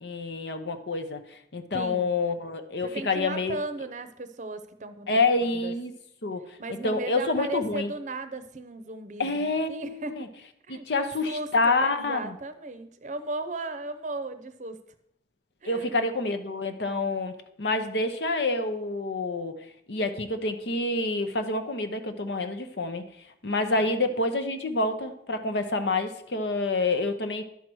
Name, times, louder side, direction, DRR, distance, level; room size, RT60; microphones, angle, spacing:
voice 1, 0.0-3.6 5.1-5.9 6.2-6.6 6.8-7.9 9.2-10.3 10.7-12.3 15.6-17.3 17.6-23.0 23.4-27.4, left 2 dB, 70° left, 7 dB, 0.9 m, -27 dB
voice 2, 1.7-2.1 2.8-5.7 6.6-10.3 10.7-14.8 15.6-16.0 23.7-23.9, right 2 dB, 45° right, 10 dB, 0.7 m, -36 dB
11.0 x 4.7 x 6.2 m, 0.75 s
head